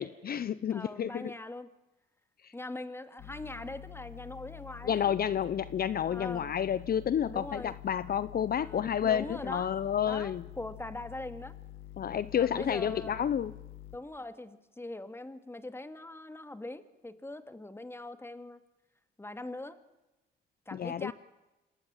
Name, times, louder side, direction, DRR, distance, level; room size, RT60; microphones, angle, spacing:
voice 1, 0.0-1.2 2.4-2.5 4.9-10.4 12.0-13.5 20.7-21.1, left 9 dB, 50° left, 16 dB, 0.8 m, -30 dB
voice 2, 0.7-1.7 2.5-5.2 6.1-6.5 7.2-7.7 8.5-9.7 10.0-11.6 12.4-13.2 13.9-18.6 19.2-19.8 20.7-21.1, left 2 dB, 10° left, 11 dB, 2.3 m, -42 dB
sound 1, 3.2-14.0, left 14 dB, 85° left, 1.5 m, -48 dB
27.5 x 18.0 x 8.9 m, 1.0 s
cardioid pair, 90°, 20 cm